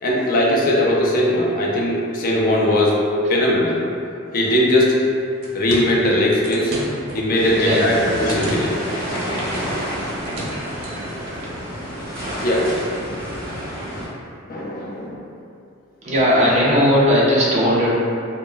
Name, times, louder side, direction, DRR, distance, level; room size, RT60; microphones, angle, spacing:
voice 1, 0.0-3.8 4.3-5.0 5.5-6.7 7.1-8.7 12.4-12.7 14.5-15.2, left 1 dB, 45° left, -3 dB, 0.4 m, -19 dB
sound 1, 5.2-11.6, right 1 dB, 90° right, 0.5 m, -34 dB
sound 2, 7.3-14.1, equal, 50° right, 0.9 m, -29 dB
voice 2, 7.4-7.8 16.0-17.9, equal, 35° right, -6 dB, 0.5 m, -17 dB
2.1 x 2.0 x 3.2 m, 2.5 s
head